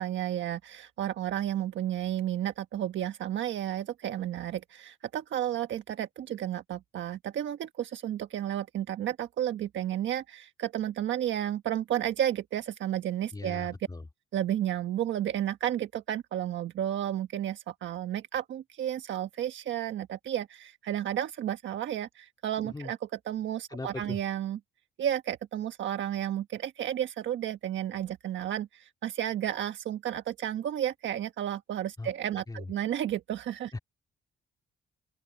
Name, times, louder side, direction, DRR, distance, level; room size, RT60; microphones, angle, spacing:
voice 1, 0.0-13.7 14.3-24.6 25.0-33.7, right 11 dB, 70° right, 1.4 m, -32 dB
voice 2, 13.3-14.0 22.6-22.9 23.7-24.2 32.0-32.1 32.5-32.7 33.7-33.8, left 2 dB, 20° left, 3.0 m, -39 dB
open air
cardioid pair, 90°, 20 cm